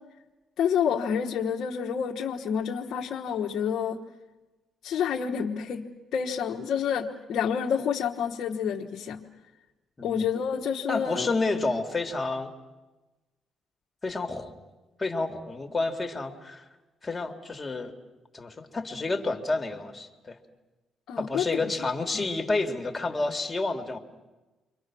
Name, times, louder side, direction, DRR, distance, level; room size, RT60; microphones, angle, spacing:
voice 1, 0.6-4.0 4.8-9.2 10.0-11.3 21.1-21.5 22.1-22.2, left 7 dB, 70° left, -1 dB, 1.3 m, -28 dB
voice 2, 10.9-12.5 14.0-14.5 15.0-16.6 17.0-17.9 18.3-20.4 21.2-24.0, left 3 dB, 25° left, 4 dB, 2.5 m, -30 dB
29.0 x 24.0 x 6.2 m, 1.1 s
cardioid pair, 90°, 0 cm